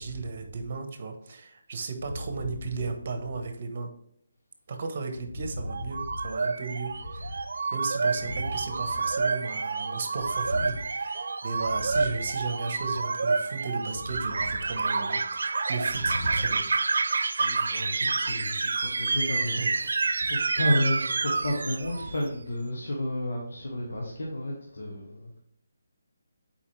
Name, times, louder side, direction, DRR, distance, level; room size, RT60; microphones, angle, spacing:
voice 1, 0.0-3.9 4.7-7.4 7.7-16.6 19.5-19.7, right 4 dB, 50° right, 6 dB, 1.1 m, -35 dB
voice 2, 2.1-2.8 5.2-6.2 7.1-7.3 8.2-8.9 10.4-10.8 11.9-12.1 13.9-14.6 15.9-16.5 17.1-25.4, left 1 dB, 75° left, -2 dB, 1.6 m, -33 dB
sound 1, 5.7-22.2, right 4 dB, 70° right, 0.5 m, -29 dB
7.0 x 4.8 x 3.3 m, 0.71 s
figure-of-eight pair, 160°, 0 cm